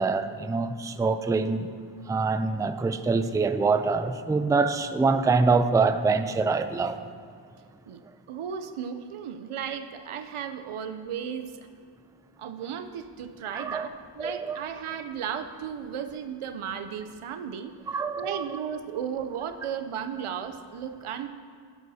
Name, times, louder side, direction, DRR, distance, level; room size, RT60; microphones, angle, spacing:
voice 1, 0.0-1.7 2.1-7.0 13.5-13.9 14.2-14.6 17.9-18.4, right 4 dB, 10° right, 11 dB, 0.4 m, -25 dB
voice 2, 8.3-11.7 12.4-17.7 18.2-21.3, right 8 dB, 80° right, 9 dB, 0.7 m, -35 dB
11.0 x 11.0 x 2.8 m, 2.2 s
cardioid pair, 45°, 50 cm